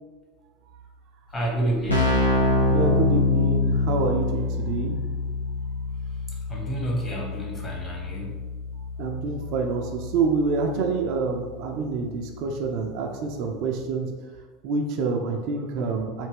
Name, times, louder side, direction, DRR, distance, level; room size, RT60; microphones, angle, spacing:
Keyboard (musical), 1.3-1.4 1.6-12.2, left 2 dB, 90° left, 0.6 m, -26 dB
voice 1, 1.3-2.1 6.5-8.3, right 1 dB, 20° left, -2 dB, 1.0 m, -29 dB
voice 2, 2.7-5.0 9.0-14.1 14.6-16.3, right 4 dB, 50° right, 2 dB, 0.4 m, -27 dB
3.3 x 2.6 x 3.3 m, 1.3 s
figure-of-eight pair, 75°, 0 cm